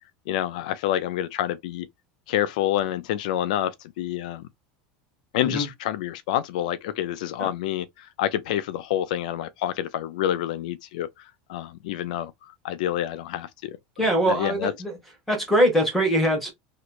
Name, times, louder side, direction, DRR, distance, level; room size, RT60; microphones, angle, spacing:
voice 1, 0.3-1.9 2.3-4.4 5.3-13.8 14.3-14.7, left 12 dB, 85° left, 0.4 m, -28 dB
voice 2, 14.0-15.0 15.3-16.5, equal, 5° left, 1.3 m, -22 dB
3.1 x 2.8 x 2.4 m
supercardioid pair, 180°, 4 cm